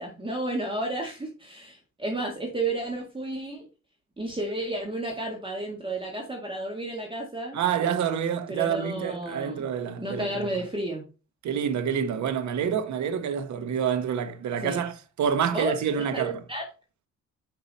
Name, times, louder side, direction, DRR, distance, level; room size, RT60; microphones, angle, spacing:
voice 1, 0.0-3.7 4.2-7.6 8.5-9.6 10.0-11.0 14.6-14.8 15.5-15.7 16.1-16.6, right 2 dB, 15° right, 1.8 m, -32 dB
voice 2, 7.5-10.5 11.4-16.4, right 8 dB, 70° right, 1.2 m, -27 dB
5.9 x 5.7 x 4.1 m
cardioid pair, 90°, 30 cm